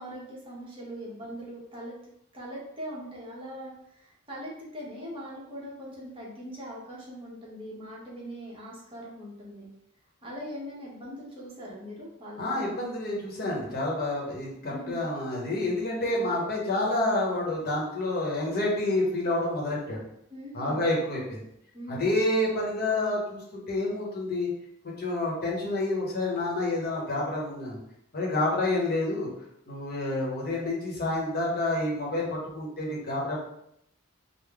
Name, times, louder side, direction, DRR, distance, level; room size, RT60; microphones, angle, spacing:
voice 1, 0.0-1.9 2.3-9.7 10.2-12.6 14.7-15.0 20.3-20.8 21.7-22.1, equal, 25° right, -5 dB, 1.0 m, -41 dB
voice 2, 12.4-20.0 20.5-21.4 21.9-24.5 25.0-27.8 28.1-29.3 29.7-33.4, left 2 dB, 45° left, -3 dB, 1.0 m, -28 dB
3.5 x 2.1 x 3.4 m, 0.76 s
head